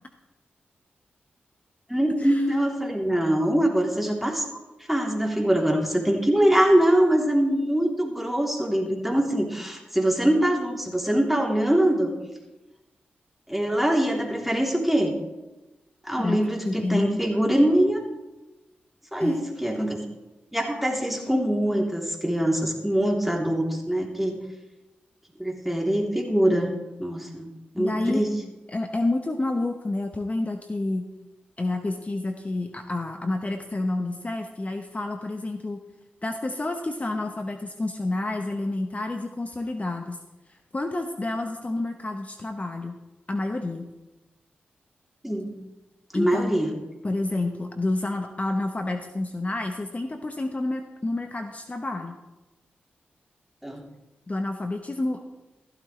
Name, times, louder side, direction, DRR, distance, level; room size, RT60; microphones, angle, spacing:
voice 1, 1.9-4.6 4.9-12.1 13.5-15.1 16.1-18.0 19.1-20.0 20.5-24.4 25.4-26.7 27.0-28.3 45.2-45.6 46.1-46.7 53.6-53.8, right 1 dB, 5° right, -1 dB, 3.3 m, -23 dB
voice 2, 16.2-17.2 19.2-19.5 27.8-28.3 28.7-31.1 31.6-35.8 36.2-40.2 40.5-43.0 43.3-43.9 46.1-46.5 47.0-52.2 54.3-55.2, left 2 dB, 35° left, 5 dB, 1.1 m, -29 dB
15.0 x 12.5 x 3.3 m, 1.1 s
supercardioid pair, 40°, 4 cm